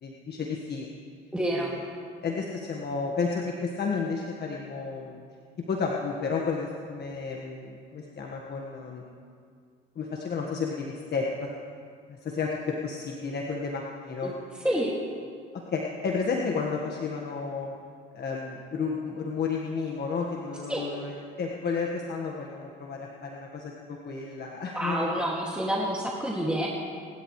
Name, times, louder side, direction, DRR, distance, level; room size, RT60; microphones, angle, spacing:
voice 1, 0.0-0.9 1.5-1.8 2.2-5.2 5.7-9.0 9.9-11.5 12.1-14.3 15.5-17.7 18.1-25.0, left 5 dB, 50° left, -1 dB, 1.6 m, -32 dB
voice 2, 1.3-1.7 14.2-14.3 14.6-14.9 20.7-20.8 24.7-26.7, right 1 dB, 5° right, -4 dB, 2.3 m, -28 dB
27.5 x 12.0 x 3.2 m, 2.2 s
supercardioid pair, 75°, 21 cm